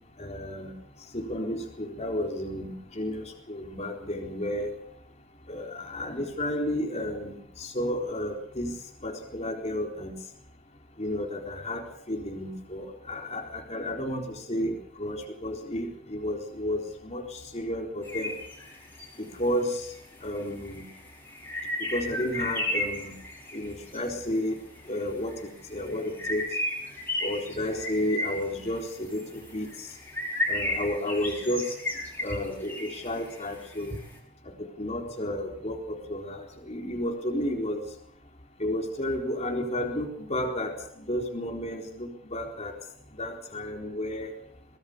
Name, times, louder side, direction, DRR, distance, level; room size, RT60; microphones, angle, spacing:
voice 1, 0.2-0.7 1.1-4.7 5.5-8.7 9.0-10.1 11.0-18.4 19.2-19.9 20.2-20.8 21.9-23.1 23.5-24.6 24.9-26.5 27.2-29.7 30.5-31.7 32.2-34.0 34.5-37.8 38.6-40.7 41.1-42.7 43.2-44.3, left 1 dB, 35° left, 1 dB, 4.1 m, -32 dB
sound 1, 18.0-19.1 20.0-20.1 20.4-24.0 24.8-25.0 25.3-34.0, left 1 dB, 10° left, 5.9 m, -34 dB
23.5 x 20.0 x 6.8 m, 0.70 s
head